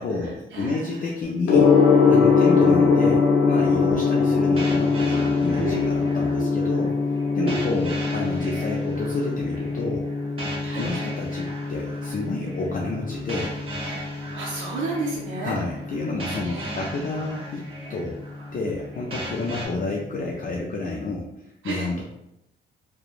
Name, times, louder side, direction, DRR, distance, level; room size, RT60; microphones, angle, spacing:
voice 1, 0.0-1.7 2.1-6.9 7.3-10.1 10.7-13.5 13.8-14.1 15.4-18.2 18.5-21.3 21.6-22.0, left 3 dB, 45° left, -2 dB, 0.4 m, -30 dB
voice 2, 0.5-1.1 2.4-2.6 5.6-5.9 6.4-6.7 7.4-7.6 10.6-10.9 14.3-15.5 16.4-17.0 21.6-21.9, right 3 dB, 70° right, -5 dB, 0.6 m, -31 dB
Gong, 1.4-20.5, left 5 dB, 85° left, 0.6 m, -23 dB
sound 1, 4.6-19.7, right 1 dB, 30° right, 0.8 m, -38 dB
2.9 x 2.1 x 2.4 m, 0.84 s
cardioid pair, 90°, 20 cm